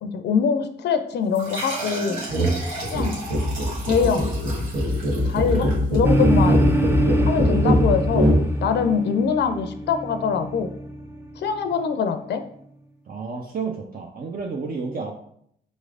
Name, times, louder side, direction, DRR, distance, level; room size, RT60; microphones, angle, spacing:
voice 1, 0.0-2.2 2.9-3.2 3.9-4.3 5.2-6.7 7.3-8.3 8.6-10.7 11.4-12.4, left 6 dB, 60° left, 8 dB, 0.4 m, -23 dB
sound 1, 1.3-6.5, right 2 dB, 85° right, 1.1 m, -35 dB
sound 2, 2.3-2.5 2.8-8.4, equal, 65° right, 1.3 m, -21 dB
sound 3, 6.0-11.7, right 1 dB, 10° right, 0.7 m, -25 dB
voice 2, 13.1-15.1, right 4 dB, 45° right, 1 dB, 0.6 m, -31 dB
5.2 x 3.1 x 2.4 m, 0.68 s
supercardioid pair, 45°, 20 cm